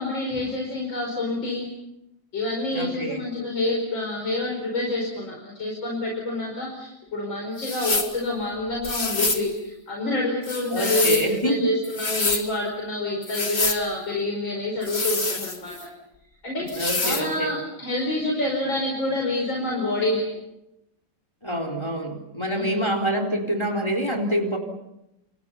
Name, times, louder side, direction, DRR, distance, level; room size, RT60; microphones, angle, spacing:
voice 1, 0.0-1.7 2.3-15.8 16.4-20.2 22.5-22.8, left 2 dB, 85° left, 0 dB, 5.9 m, -27 dB
voice 2, 2.7-3.2 10.7-11.7 16.7-17.5 21.4-24.6, right 1 dB, 15° left, 2 dB, 4.0 m, -26 dB
sound 1, 7.6-8.2 8.8-9.5 10.4-11.3 11.8-12.5 13.2-13.8 14.8-15.8 16.7-17.3, left 3 dB, 35° left, 2.4 m, -27 dB
29.5 x 28.5 x 5.7 m, 0.88 s
omnidirectional pair, 2.1 m